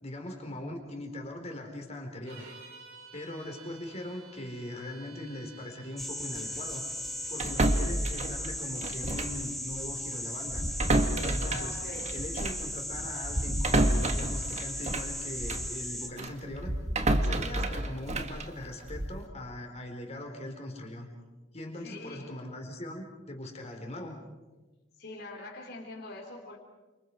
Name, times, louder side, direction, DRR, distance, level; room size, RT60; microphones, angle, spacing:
voice 1, 0.0-2.5 3.1-6.8 7.3-10.6 11.2-11.8 12.1-16.7 17.2-21.1 21.5-24.2, left 1 dB, 35° left, 3 dB, 4.4 m, -40 dB
sound 1, 2.2-8.0, right 3 dB, 75° right, 5.6 m, -52 dB
sound 2, 6.0-16.1, left 1 dB, ahead, 2.5 m, -37 dB
sound 3, 7.4-9.4 9.7-9.9 10.5-15.7 16.2-19.2, right 1 dB, 35° right, 1.7 m, -30 dB
voice 2, 11.4-12.2 21.8-22.4 25.0-26.6, left 2 dB, 50° left, -1 dB, 3.6 m, -43 dB
29.0 x 27.5 x 4.9 m, 1.2 s
head